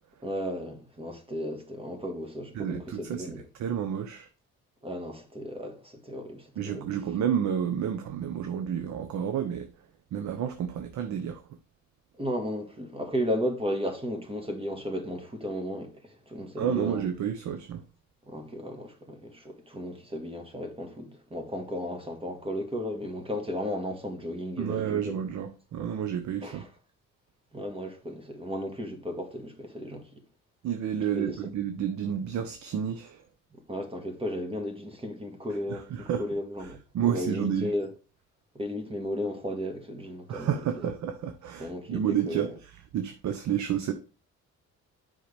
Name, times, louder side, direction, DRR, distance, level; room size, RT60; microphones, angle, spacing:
voice 1, 0.2-3.4 4.8-6.9 12.2-17.0 18.2-25.2 26.4-26.7 27.5-30.2 31.1-31.4 33.5-36.8 37.0-37.9 38.5-40.9 41.6-42.5, equal, 20° right, 1.7 m, -34 dB
voice 2, 2.5-4.3 6.6-9.7 10.1-11.4 16.6-17.8 24.6-26.6 30.6-33.2 35.7-36.3 36.6-37.7 40.3-43.9, right 9 dB, 70° right, 0.8 m, -30 dB
7.8 x 5.6 x 3.5 m
cardioid pair, 90°, 30 cm